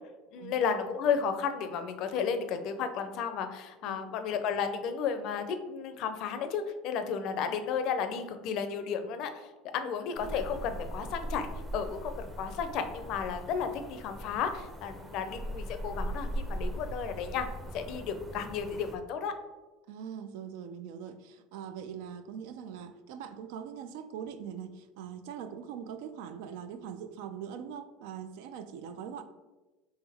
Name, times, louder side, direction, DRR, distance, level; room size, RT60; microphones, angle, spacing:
voice 1, 0.3-9.5 9.7-17.5 17.7-19.3, left 6 dB, 60° left, 9 dB, 0.4 m, -33 dB
sound 1, 10.1-19.0, right 1 dB, 20° right, 0.7 m, -40 dB
voice 2, 19.9-29.2, right 8 dB, 75° right, 10 dB, 0.3 m, -42 dB
3.4 x 3.0 x 3.4 m, 1.1 s
supercardioid pair, 90°, 0 cm